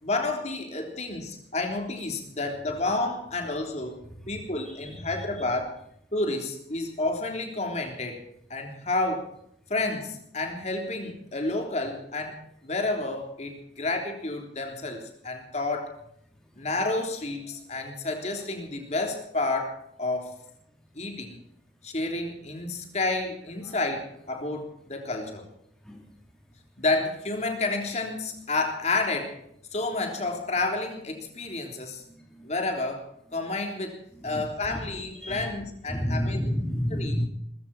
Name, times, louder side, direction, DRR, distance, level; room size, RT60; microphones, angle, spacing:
voice 1, 0.0-4.0 4.3-5.7 6.1-8.2 8.5-9.3 9.7-16.0 16.5-20.4 20.9-21.4 21.8-25.5 26.8-29.4 29.7-32.0 32.4-36.4 36.9-37.1, left 2 dB, 40° left, 3 dB, 3.5 m, -30 dB
voice 2, 34.3-34.8 35.2-35.5 35.9-37.3, equal, 5° left, 0 dB, 3.2 m, -29 dB
20.0 x 15.5 x 4.3 m, 0.70 s
head